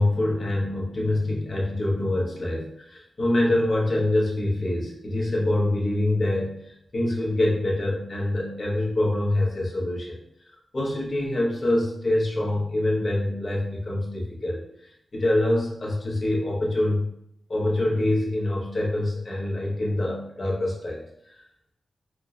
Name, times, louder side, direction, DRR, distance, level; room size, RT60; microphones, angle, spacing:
voice 1, 0.0-10.2 10.7-17.1 17.5-21.0 21.3-21.4, left 1 dB, 45° left, -4 dB, 0.8 m, -25 dB
3.3 x 2.0 x 2.3 m, 0.76 s
wide cardioid pair, 80°, 0 cm